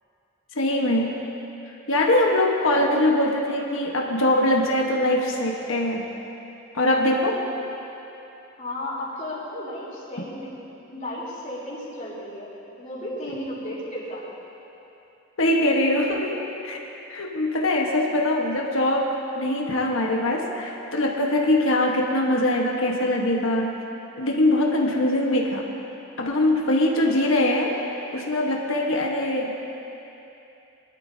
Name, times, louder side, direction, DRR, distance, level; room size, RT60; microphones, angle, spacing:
voice 1, 0.6-1.2 1.9-6.1 6.7-7.5 15.4-16.8 17.1-23.8 24.2-25.7 26.2-29.6, left 1 dB, 70° left, -1 dB, 1.3 m, -22 dB
voice 2, 8.6-10.5 10.9-12.5 12.8-14.2, left 1 dB, 35° left, -7 dB, 3.4 m, -34 dB
21.5 x 12.5 x 2.8 m, 2.9 s
head